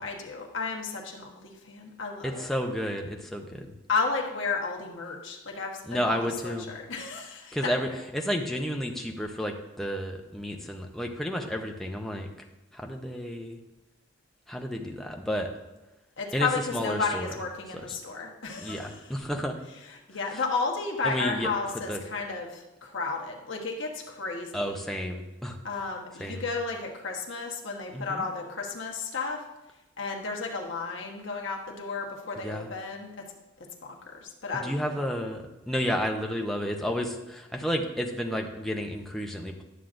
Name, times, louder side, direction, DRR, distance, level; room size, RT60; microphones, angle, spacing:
voice 1, 0.0-2.5 3.9-8.0 16.2-19.2 19.8-24.8 25.6-29.4 30.0-33.1 33.8-35.0, left 4 dB, 65° left, 0 dB, 1.2 m, -33 dB
voice 2, 2.2-3.7 5.9-6.7 7.5-12.3 12.7-13.6 14.5-15.5 16.3-17.3 17.7-17.8 18.6-19.6 21.0-21.5 21.9-22.0 24.5-25.6 26.2-26.4 27.9-28.2 32.4-32.7 34.6-39.6, equal, ahead, 1 dB, 0.6 m, -31 dB
11.5 x 7.3 x 2.6 m, 1.0 s
head